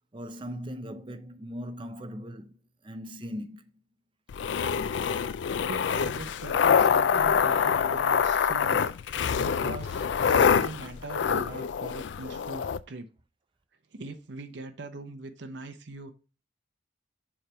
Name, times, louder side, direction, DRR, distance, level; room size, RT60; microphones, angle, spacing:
voice 1, 0.1-2.6 2.8-3.7, equal, 25° right, 0.5 m, -39 dB
sound 1, 4.3-12.8, left 7 dB, 75° left, 0.4 m, -25 dB
voice 2, 5.7-8.8 9.0-13.1 13.9-16.1, right 3 dB, 70° right, 0.8 m, -41 dB
7.0 x 3.4 x 5.0 m
head